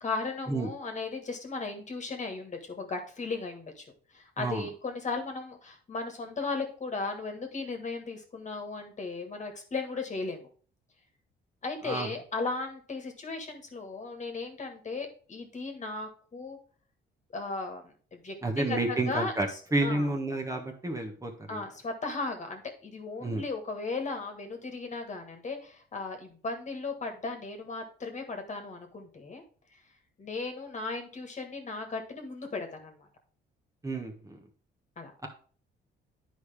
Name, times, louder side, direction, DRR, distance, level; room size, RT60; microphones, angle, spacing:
voice 1, 0.0-3.8 4.1-10.5 11.6-16.6 17.3-20.1 21.5-29.4 30.2-33.1 35.0-35.1, left 3 dB, 35° left, 5 dB, 1.6 m, -36 dB
voice 2, 4.4-4.7 11.8-12.1 18.4-21.6 23.2-23.4 33.8-34.4, right 2 dB, 15° right, 2 dB, 1.2 m, -30 dB
9.2 x 5.0 x 3.5 m, 0.42 s
cardioid pair, 90°, 20 cm